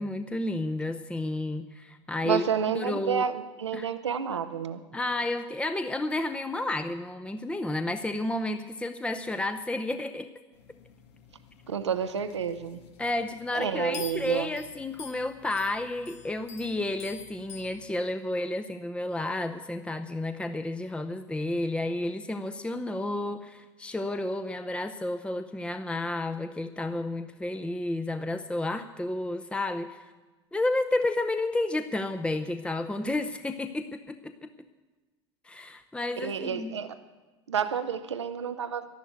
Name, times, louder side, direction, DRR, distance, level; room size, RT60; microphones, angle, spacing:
voice 1, 0.0-2.4 2.7-3.2 3.7-3.9 4.9-10.3 13.0-30.1 30.5-34.5 35.4-36.8, left 2 dB, 5° left, 9 dB, 0.7 m, -31 dB
voice 2, 2.2-4.8 11.7-12.8 13.5-14.5 36.2-37.0 37.5-38.9, right 7 dB, 90° right, 10 dB, 0.8 m, -30 dB
sound 1, 10.5-17.9, left 7 dB, 75° left, 1.7 m, -48 dB
12.0 x 11.5 x 8.0 m, 1.2 s
hypercardioid pair, 80°, 14 cm